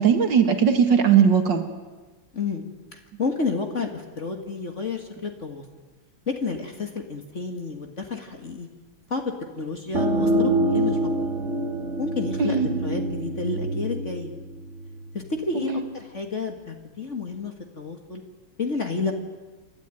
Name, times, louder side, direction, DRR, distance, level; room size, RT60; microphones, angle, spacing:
voice 1, 0.0-1.6 12.4-12.9 15.6-15.8, right 7 dB, 55° right, 7 dB, 2.4 m, -19 dB
voice 2, 2.3-2.6 2.9-5.7 6.3-8.7 9.1-11.2 12.0-14.3 15.1-18.2 18.6-19.1, left 4 dB, 35° left, 4 dB, 1.9 m, -30 dB
sound 1, 9.9-15.3, right 1 dB, 35° right, 1.6 m, -26 dB
28.5 x 13.0 x 9.2 m, 1.3 s
omnidirectional pair, 2.4 m